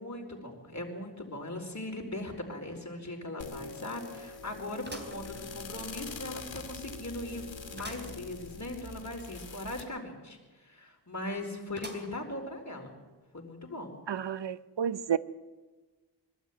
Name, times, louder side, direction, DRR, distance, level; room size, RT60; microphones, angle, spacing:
voice 1, 0.0-12.9 13.3-14.0, left 1 dB, 40° left, 4.6 m, -39 dB
sound 1, 2.6-2.7 3.1-3.2 4.8-5.9 6.4-6.5 7.8-8.2 8.6-8.7 8.9-9.0 11.8-12.4 13.0-13.1 14.0-14.1, equal, 25° right, 3.8 m, -46 dB
sound 2, 3.4-9.8, left 4 dB, 85° left, 2.3 m, -44 dB
voice 2, 14.1-15.2, right 8 dB, 70° right, 0.8 m, -31 dB
23.0 x 12.5 x 9.3 m
wide cardioid pair, 55°, 44 cm